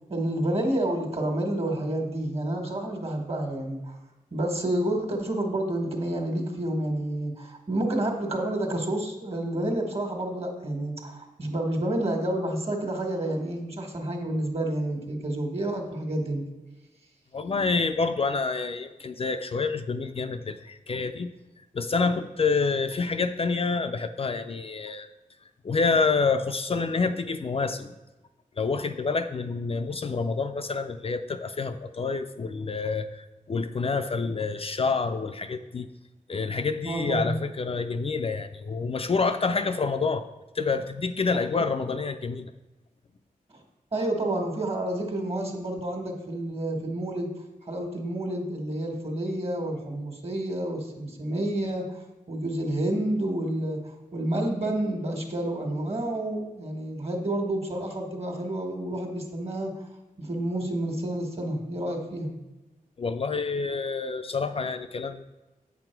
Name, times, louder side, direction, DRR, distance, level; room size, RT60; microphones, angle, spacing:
voice 1, 0.1-3.9 4.3-16.5 36.8-37.4 43.9-47.3 47.6-52.0 52.3-53.8 54.1-59.7 60.2-62.4, right 1 dB, 40° right, 3 dB, 1.6 m, -29 dB
voice 2, 17.3-21.3 21.7-25.1 25.6-27.9 28.6-35.9 36.3-40.3 40.5-42.5 63.0-65.2, left 4 dB, 40° left, 7 dB, 0.4 m, -28 dB
8.4 x 6.0 x 4.6 m, 1.1 s
wide cardioid pair, 110°, 15 cm